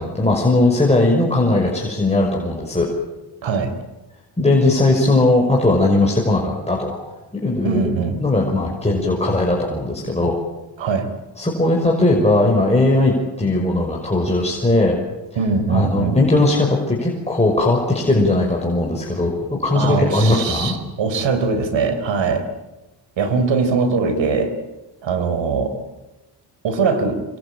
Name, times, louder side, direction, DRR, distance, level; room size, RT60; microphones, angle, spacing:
voice 1, 0.0-2.9 4.4-7.0 7.3-7.8 8.2-10.4 11.4-15.0 15.7-20.8, left 2 dB, 15° left, -1 dB, 5.9 m, -18 dB
voice 2, 3.4-3.7 7.6-8.2 10.8-11.1 15.3-16.2 19.7-22.5 23.2-24.5 25.0-25.8 26.6-27.2, right 4 dB, 90° right, 9 dB, 4.2 m, -21 dB
27.0 x 24.0 x 9.0 m, 1.1 s
cardioid pair, 90°, 44 cm